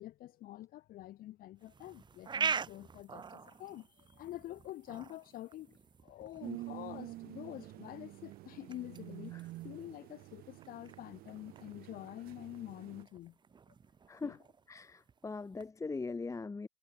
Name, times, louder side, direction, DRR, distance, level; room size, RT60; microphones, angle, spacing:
voice 1, 0.0-5.8 6.0-9.4 9.6-13.4 14.2-14.4, left 14 dB, 55° left, 3.9 m, -47 dB
sound 1, 1.6-15.7, right 6 dB, 25° right, 1.1 m, -44 dB
sound 2, 6.4-13.0, right 17 dB, 60° right, 3.7 m, -48 dB
voice 2, 14.7-16.7, left 4 dB, 15° left, 1.5 m, -40 dB
hypercardioid pair, 75°, 18 cm